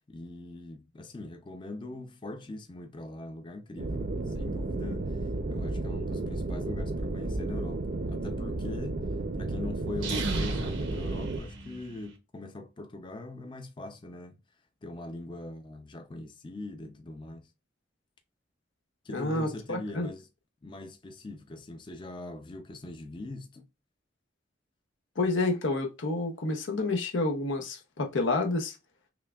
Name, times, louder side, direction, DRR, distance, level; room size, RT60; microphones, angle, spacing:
voice 1, 0.1-5.2 5.5-9.1 9.4-14.4 14.8-17.5 19.0-20.2 20.6-23.7, left 2 dB, 25° left, 0.5 m, -42 dB
sound 1, 3.8-11.4, right 2 dB, 50° right, 0.5 m, -33 dB
sound 2, 9.9-12.1, right 2 dB, 85° right, 0.8 m, -34 dB
voice 2, 19.1-20.1 25.2-28.8, left 2 dB, 90° left, 0.8 m, -29 dB
5.7 x 2.2 x 2.3 m
head